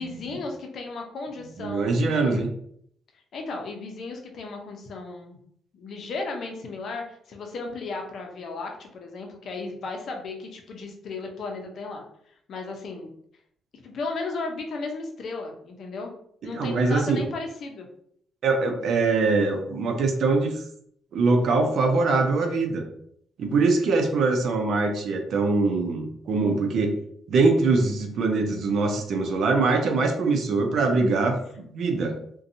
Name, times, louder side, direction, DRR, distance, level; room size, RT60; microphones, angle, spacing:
voice 1, 0.0-2.5 3.3-5.4 5.7-12.0 12.5-13.1 13.8-16.1 16.4-17.9, left 3 dB, 60° left, 2 dB, 0.6 m, -35 dB
voice 2, 1.6-2.5 16.4-17.2 18.4-20.6 21.1-22.8 23.4-26.9 27.3-32.1, right 3 dB, 65° right, 4 dB, 0.5 m, -23 dB
2.6 x 2.2 x 2.6 m, 0.67 s
cardioid pair, 90°, 0 cm